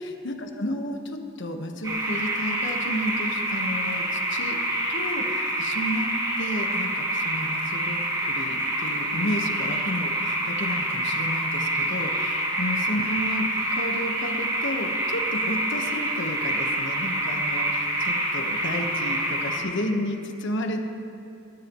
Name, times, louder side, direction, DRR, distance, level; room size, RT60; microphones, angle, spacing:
voice 1, 0.0-4.6 4.9-6.1 6.4-20.8, left 1 dB, 55° left, 4 dB, 1.4 m, -32 dB
sound 1, 1.8-19.6, right 1 dB, 20° right, 2.5 m, -27 dB
21.5 x 18.5 x 3.1 m, 2.6 s
head